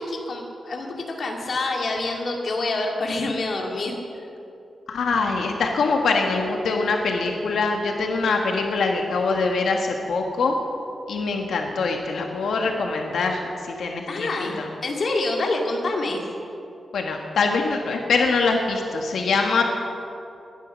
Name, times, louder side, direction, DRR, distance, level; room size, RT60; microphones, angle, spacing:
voice 1, 0.0-4.0 14.1-16.2, left 2 dB, 45° left, 0 dB, 2.1 m, -27 dB
voice 2, 4.9-10.5 11.1-13.4 13.8-14.7 16.9-19.6, left 4 dB, 85° left, 2 dB, 1.4 m, -23 dB
20.0 x 10.5 x 6.2 m, 2.7 s
wide cardioid pair, 175°, 0 cm